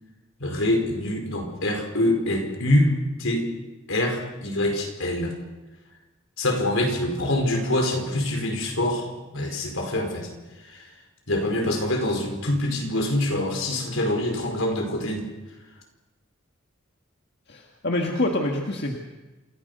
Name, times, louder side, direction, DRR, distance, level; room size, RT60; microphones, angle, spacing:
voice 1, 0.4-2.9 3.2-3.5 3.9-5.3 6.4-9.1 9.3-10.3 10.6-10.9 11.3-15.3, left 1 dB, 80° left, 3 dB, 5.0 m, -25 dB
voice 2, 17.5-19.0, left 1 dB, 55° left, 1 dB, 1.9 m, -26 dB
28.0 x 15.0 x 6.8 m, 1.1 s
head